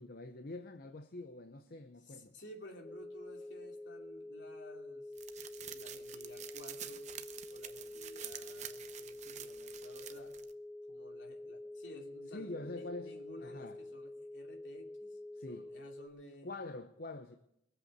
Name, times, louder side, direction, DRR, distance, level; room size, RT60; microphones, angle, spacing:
voice 1, 0.0-2.4 12.3-13.8 15.3-15.7 16.4-17.4, left 2 dB, 50° left, 8 dB, 0.7 m, -45 dB
voice 2, 2.0-5.1 5.5-7.1 7.5-10.3 10.9-15.2 15.5-16.5, left 1 dB, 70° left, 2 dB, 2.8 m, -54 dB
sound 1, 2.8-16.1, left 1 dB, 30° left, 1.6 m, -48 dB
sound 2, 5.2-10.5, right 10 dB, 40° right, 0.7 m, -48 dB
21.5 x 8.1 x 6.7 m, 0.80 s
head